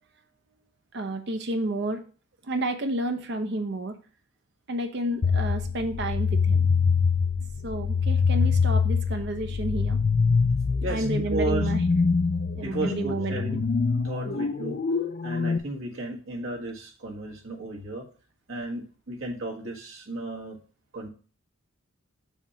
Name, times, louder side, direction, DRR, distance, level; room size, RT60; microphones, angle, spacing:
voice 1, 0.9-2.0 2.5-4.0 4.7-6.7 7.6-10.0 10.9-11.8 12.5-13.6 14.3-14.4, right 1 dB, 55° right, 7 dB, 0.7 m, -31 dB
sound 1, 5.2-15.6, left 5 dB, 40° left, 0.4 m, -24 dB
voice 2, 10.8-11.7 12.6-13.6 14.0-14.8 15.2-18.0 18.5-20.6 20.9-21.1, right 2 dB, 70° right, 0 dB, 1.6 m, -34 dB
7.2 x 3.1 x 5.6 m, 0.39 s
head